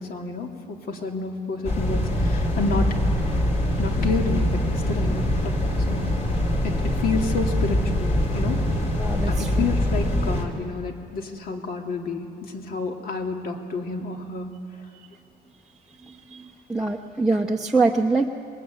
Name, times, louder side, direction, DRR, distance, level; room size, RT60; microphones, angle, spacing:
voice 1, 0.0-2.9 3.8-6.2 6.6-8.6 9.3-14.5, left 4 dB, 60° left, 2 dB, 2.8 m, -30 dB
sound 1, 1.6-10.5, left 1 dB, 40° left, 3.5 m, -23 dB
voice 2, 9.0-9.6 16.3-16.4 16.7-18.3, right 3 dB, 5° right, 3 dB, 0.9 m, -23 dB
26.5 x 21.5 x 9.0 m, 2.5 s
cardioid pair, 150°, 17 cm